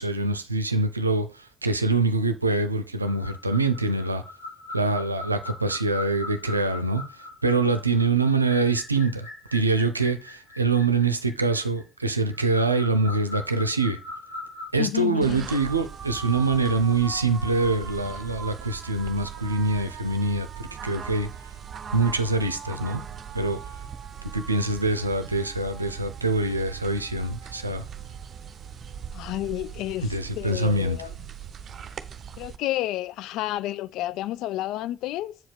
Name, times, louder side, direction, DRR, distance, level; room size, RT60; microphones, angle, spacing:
voice 1, 0.0-4.2 4.7-14.0 14.7-21.3 21.9-23.0 23.3-23.6 24.3-27.8 30.1-31.0, right 3 dB, 90° right, 0.5 m, -24 dB
sound 1, 3.0-14.7, left 2 dB, 80° left, 4.3 m, -41 dB
voice 2, 14.8-15.5 29.1-31.1 32.4-35.4, left 15 dB, 60° left, 0.3 m, -30 dB
sound 2, 15.2-32.6, right 7 dB, 45° right, 0.8 m, -39 dB
7.7 x 4.9 x 5.0 m
figure-of-eight pair, 45°, 0 cm